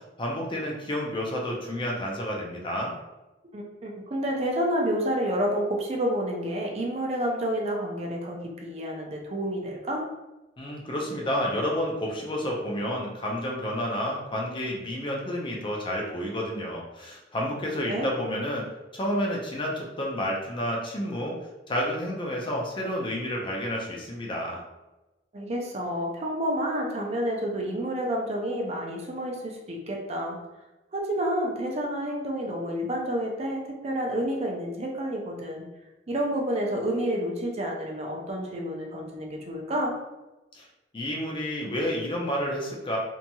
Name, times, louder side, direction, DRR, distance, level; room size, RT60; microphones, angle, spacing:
voice 1, 0.0-2.9 10.6-18.7 18.9-21.4 21.7-24.6 40.5-40.7 40.9-43.0, equal, 25° left, -1 dB, 0.5 m, -30 dB
voice 2, 3.5-10.0 17.9-18.1 25.3-30.4 30.9-35.6 36.1-39.9, equal, 35° right, -1 dB, 0.5 m, -29 dB
2.8 x 2.7 x 2.2 m, 1.0 s
head